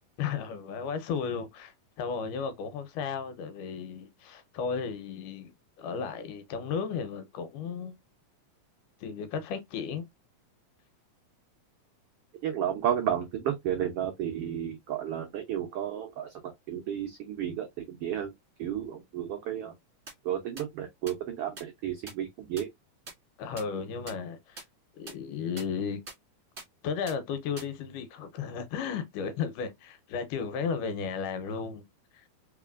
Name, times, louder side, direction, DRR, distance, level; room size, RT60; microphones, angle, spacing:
voice 1, 0.2-5.5 5.8-7.9 9.0-10.0 23.4-24.7 24.9-26.0 26.8-31.9 32.1-32.3, left 6 dB, 90° left, 2.4 m, -34 dB
voice 2, 12.4-18.3 18.6-19.7 20.2-22.7, right 10 dB, 85° right, 1.3 m, -32 dB
sound 1, 20.1-20.2 20.6-20.7 21.1-21.2 21.6-21.7 22.1-22.2 22.6-22.7 23.1-23.2 23.6-23.7 24.1-24.2 24.6-24.7 25.1-25.2 25.6-25.7 26.1-26.2 26.6-26.7 27.1-27.2 27.6-27.7, right 3 dB, 30° right, 1.5 m, -42 dB
4.1 x 3.8 x 2.4 m
omnidirectional pair, 3.7 m